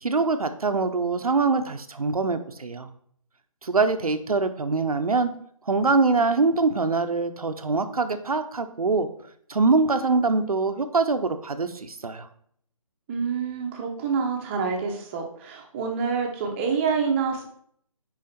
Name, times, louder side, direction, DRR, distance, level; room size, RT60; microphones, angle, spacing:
voice 1, 0.0-2.9 3.6-5.3 5.7-9.1 9.5-12.3, right 3 dB, 85° right, 8 dB, 0.9 m, -23 dB
voice 2, 13.1-17.5, right 5 dB, 20° right, 2 dB, 1.0 m, -27 dB
6.5 x 5.0 x 4.2 m, 0.64 s
figure-of-eight pair, 155°, 18 cm